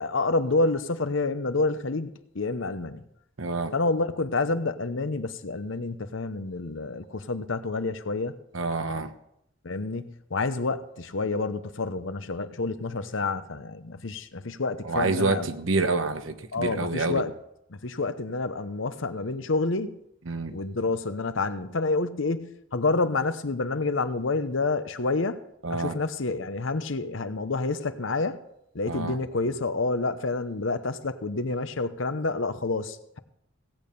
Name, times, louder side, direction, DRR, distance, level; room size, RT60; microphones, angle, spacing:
voice 1, 0.0-3.0 3.7-8.4 9.6-15.5 16.5-17.3 17.7-20.0 20.5-25.4 25.7-28.4 28.7-33.2, left 3 dB, 70° left, 0.9 m, -28 dB
voice 2, 3.4-3.7 8.5-9.1 14.8-17.2 20.3-20.5 25.6-26.0 28.9-29.2, right 3 dB, 75° right, 1.1 m, -27 dB
17.0 x 8.7 x 5.4 m
head